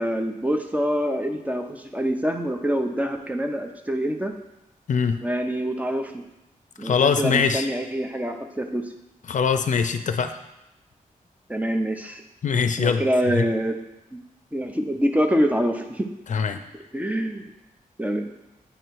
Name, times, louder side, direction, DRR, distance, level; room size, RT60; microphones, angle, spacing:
voice 1, 0.0-4.3 5.2-6.2 6.8-8.9 11.5-12.2 12.8-13.8 14.1-14.2 14.5-16.1 16.9-17.4 18.0-18.2, equal, 10° right, 5 dB, 0.7 m, -25 dB
voice 2, 4.9-5.2 6.8-7.7 9.3-10.3 12.4-13.0 13.3-13.5 16.3-16.6, left 6 dB, 60° left, 9 dB, 0.5 m, -22 dB
9.0 x 3.1 x 4.7 m, 0.97 s
wide cardioid pair, 100°, 15 cm